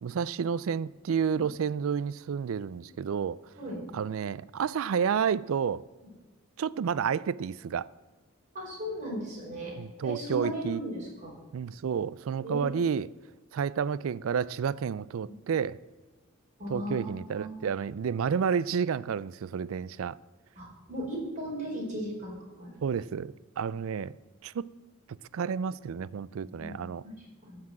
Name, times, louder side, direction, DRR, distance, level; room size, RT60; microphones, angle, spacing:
voice 1, 0.0-3.4 3.9-5.8 6.6-7.9 9.8-10.8 11.5-13.1 13.5-15.8 16.7-20.2 22.8-24.2 24.4-24.7 25.3-27.0, right 7 dB, 70° right, 0.4 m, -30 dB
voice 2, 8.5-9.7 10.0-11.4 12.4-12.7 15.3-15.4 16.6-17.6 20.6-22.8 26.5-26.7 27.0-27.6, right 1 dB, 35° right, 4.3 m, -37 dB
14.5 x 6.0 x 7.5 m
head